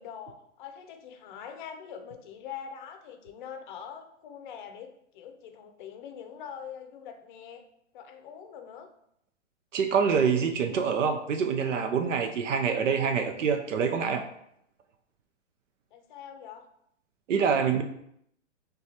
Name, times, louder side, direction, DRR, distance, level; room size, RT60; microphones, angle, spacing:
voice 1, 0.0-7.6 7.9-8.9 15.9-16.7, left 8 dB, 40° left, 7 dB, 0.5 m, -43 dB
voice 2, 9.7-14.2 17.3-17.8, right 6 dB, 85° right, 6 dB, 0.6 m, -26 dB
5.7 x 2.3 x 2.8 m, 0.74 s
hypercardioid pair, 140°, 37 cm